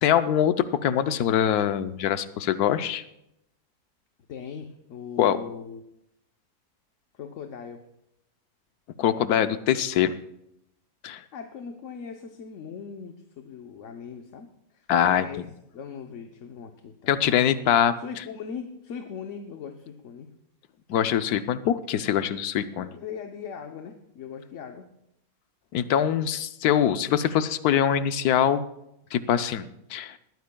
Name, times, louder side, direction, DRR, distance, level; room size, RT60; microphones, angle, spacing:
voice 1, 0.0-3.0 5.2-5.4 9.0-10.1 11.0-11.2 14.9-15.3 17.1-18.0 20.9-22.9 25.7-28.6 29.1-30.2, left 9 dB, 85° left, 12 dB, 1.2 m, -23 dB
voice 2, 4.3-5.8 7.1-7.8 11.3-15.5 15.7-17.3 18.0-20.3 22.1-22.3 22.7-24.9, left 6 dB, 60° left, 5 dB, 1.1 m, -40 dB
20.0 x 14.0 x 2.3 m, 0.82 s
omnidirectional pair, 1.6 m